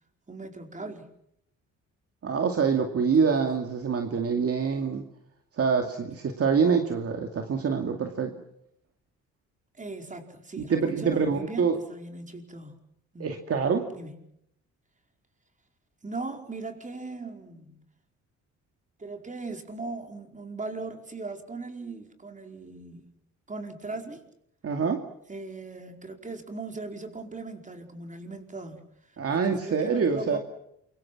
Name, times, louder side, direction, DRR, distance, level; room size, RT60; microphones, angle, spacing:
voice 1, 0.3-1.1 3.2-3.5 9.7-12.8 13.1-13.3 13.9-14.1 16.0-17.8 19.0-23.1 23.5-24.2 25.3-30.4, right 3 dB, 25° right, 4 dB, 4.8 m, -39 dB
voice 2, 2.2-5.0 5.6-8.3 10.6-11.8 13.2-13.9 24.6-25.0 29.2-30.4, right 5 dB, 50° right, 4 dB, 2.5 m, -25 dB
28.0 x 24.5 x 6.2 m, 0.76 s
cardioid pair, 90°, 30 cm